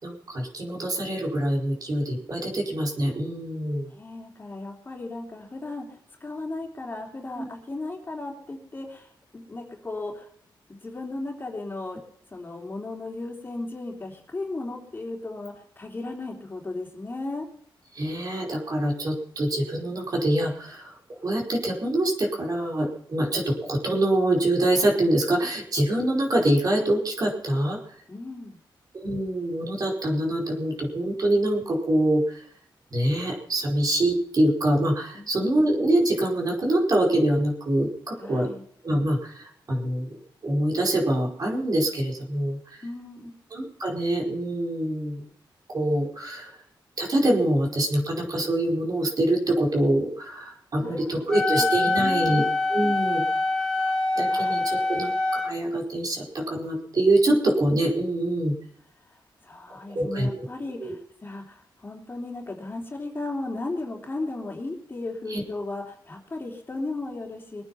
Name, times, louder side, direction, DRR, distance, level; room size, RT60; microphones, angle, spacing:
voice 1, 0.0-3.9 7.4-7.5 17.9-27.8 28.9-32.4 32.9-38.5 38.8-40.2 40.4-42.8 43.5-45.2 45.7-46.6 47.0-52.4 52.7-53.2 54.1-58.5 59.9-60.5 60.8-60.9 65.3-65.4, right 1 dB, 45° right, 0 dB, 4.9 m, -25 dB
voice 2, 3.9-10.3 10.7-12.0 12.3-17.5 28.1-28.6 35.1-35.3 38.2-38.6 42.8-43.3 50.8-52.5 54.3-54.6 57.3-57.4 59.0-67.6, left 2 dB, 25° left, 0 dB, 3.3 m, -36 dB
Wind instrument woodwind instrument, 51.3-55.5, left 2 dB, 10° left, 2.0 m, -25 dB
22.0 x 9.2 x 5.8 m, 0.63 s
wide cardioid pair, 125°, 9 cm